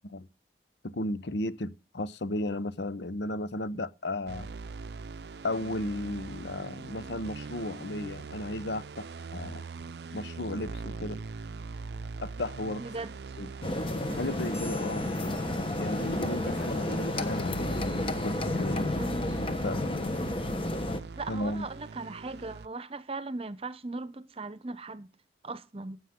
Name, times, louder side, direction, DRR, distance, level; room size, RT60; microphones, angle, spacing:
voice 1, 0.8-4.5 5.4-9.1 9.3-9.6 10.1-11.2 12.2-12.8 13.4-13.5 14.2-15.1 15.8-18.9 19.3-20.2 21.3-21.7, left 1 dB, 75° left, 0.8 m, -34 dB
sound 1, 4.3-22.7, right 4 dB, 70° right, 0.5 m, -41 dB
voice 2, 12.8-13.4 18.7-19.4 21.2-25.1 25.4-26.0, right 3 dB, 35° right, 0.8 m, -39 dB
sound 2, 13.6-21.0, left 1 dB, 30° left, 1.1 m, -31 dB
sound 3, 14.5-16.4, left 4 dB, 15° left, 4.2 m, -51 dB
15.5 x 8.9 x 3.7 m
head